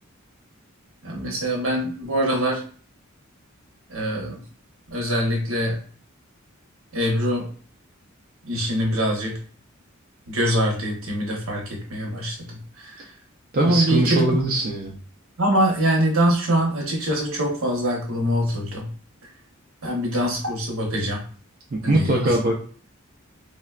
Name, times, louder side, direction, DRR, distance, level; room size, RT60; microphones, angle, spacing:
voice 1, 1.0-2.6 3.9-4.4 4.9-5.8 6.9-7.5 8.5-9.4 10.3-13.1 13.6-14.2 15.4-18.9 19.8-21.2 21.8-22.4, equal, 80° right, 0 dB, 1.0 m, -24 dB
voice 2, 13.5-15.0 21.7-22.6, right 2 dB, 45° right, -1 dB, 0.5 m, -22 dB
3.7 x 2.2 x 2.3 m, 0.42 s
head